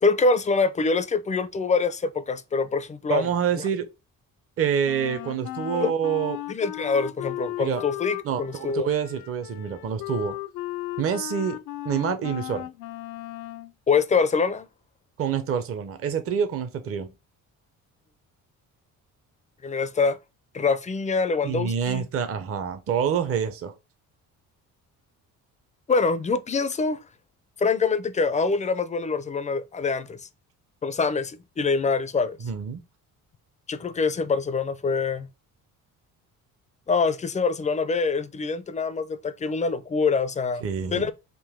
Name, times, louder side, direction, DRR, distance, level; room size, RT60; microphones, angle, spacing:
voice 1, 0.0-3.3 5.8-5.9 6.5-8.9 13.9-14.7 19.6-20.2 20.5-22.1 25.9-27.0 27.6-30.3 30.8-32.4 33.7-35.3 36.9-40.6 40.9-41.1, left 4 dB, 20° left, 0.4 m, -25 dB
voice 2, 3.1-3.9 4.6-6.4 7.6-7.8 8.2-10.4 11.0-11.6 11.8-12.7 15.2-17.1 21.4-23.7 32.4-32.8 40.6-41.1, right 7 dB, 40° right, 0.6 m, -27 dB
Wind instrument woodwind instrument, 4.8-13.7, left 15 dB, 80° left, 0.5 m, -36 dB
3.8 x 2.6 x 3.5 m
cardioid pair, 105°, 34 cm